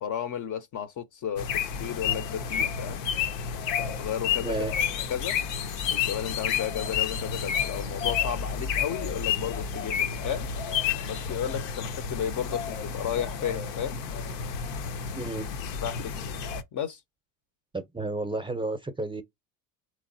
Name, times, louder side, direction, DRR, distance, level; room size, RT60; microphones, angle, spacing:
voice 1, 0.0-3.0 3.8-4.5 5.1-5.4 5.9-10.5 11.0-14.0 15.8-16.2 16.7-17.0, left 9 dB, 40° left, 0.6 m, -33 dB
sound 1, 1.4-16.6, left 7 dB, 80° left, 0.8 m, -30 dB
voice 2, 4.4-4.7 15.1-15.5 17.7-19.2, right 2 dB, 10° right, 0.6 m, -32 dB
3.5 x 3.0 x 2.6 m
supercardioid pair, 85°, 49 cm